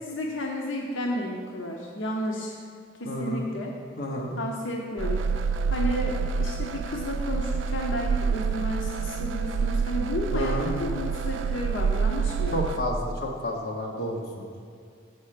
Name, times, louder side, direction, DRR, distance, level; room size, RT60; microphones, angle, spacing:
voice 1, 0.0-2.5 3.0-3.7 4.4-5.4 5.7-12.6, equal, 85° left, 0 dB, 0.7 m, -32 dB
voice 2, 3.0-3.5 4.0-4.3 10.3-10.7 12.5-14.5, equal, 55° left, -2 dB, 1.1 m, -30 dB
sound 1, 5.0-12.8, right 5 dB, 85° right, 0.3 m, -28 dB
7.0 x 4.3 x 6.5 m, 2.2 s
head